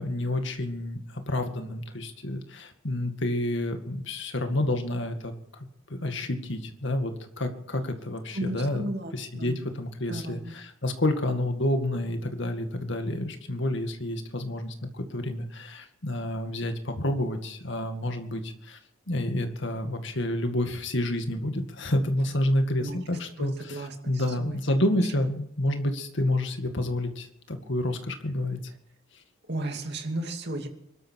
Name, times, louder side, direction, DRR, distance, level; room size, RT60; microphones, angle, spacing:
voice 1, 0.0-18.8 19.1-28.6, left 1 dB, 55° left, 6 dB, 2.2 m, -29 dB
voice 2, 8.3-9.6 10.1-10.5 22.8-23.0 23.4-24.6 24.9-25.0 29.5-30.7, right 1 dB, 50° right, 4 dB, 2.6 m, -34 dB
23.5 x 13.0 x 4.7 m, 0.78 s
head